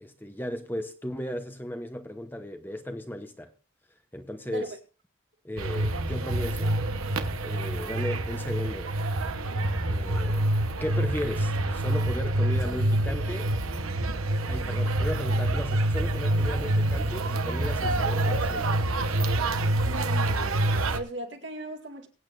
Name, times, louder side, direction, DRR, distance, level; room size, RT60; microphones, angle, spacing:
voice 1, 0.0-3.5 4.1-4.7 5.4-6.7 7.4-8.9 9.9-13.5 14.5-18.9, equal, 10° left, 0.8 m, -36 dB
sound 1, 5.6-21.0, right 1 dB, 90° right, 1.1 m, -27 dB
voice 2, 19.8-22.1, right 1 dB, 60° right, 2.1 m, -38 dB
23.0 x 8.8 x 2.6 m
head